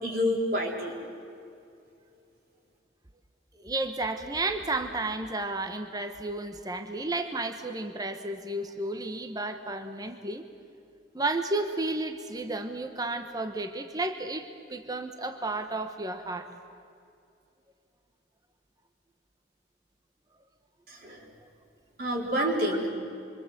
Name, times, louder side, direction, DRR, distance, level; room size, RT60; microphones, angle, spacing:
voice 1, 0.0-0.9 20.9-21.2 22.0-22.9, equal, 50° right, -1 dB, 4.4 m, -28 dB
voice 2, 3.6-10.5 11.1-16.5 22.3-22.5, right 2 dB, 20° right, 8 dB, 1.1 m, -32 dB
25.5 x 25.0 x 8.0 m, 2.5 s
head